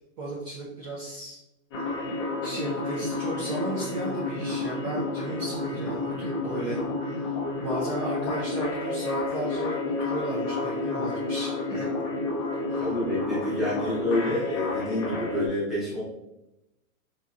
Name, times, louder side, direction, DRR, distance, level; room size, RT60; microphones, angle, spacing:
voice 1, 0.2-1.4 2.4-6.8 7.1-7.2 7.6-11.9 12.7-12.8, right 1 dB, 30° right, -6 dB, 0.6 m, -35 dB
sound 1, 1.7-15.5, left 2 dB, 25° left, 0.4 m, -30 dB
voice 2, 12.8-16.0, left 1 dB, ahead, -10 dB, 0.8 m, -28 dB
3.8 x 2.8 x 2.3 m, 0.90 s
hypercardioid pair, 150°, 44 cm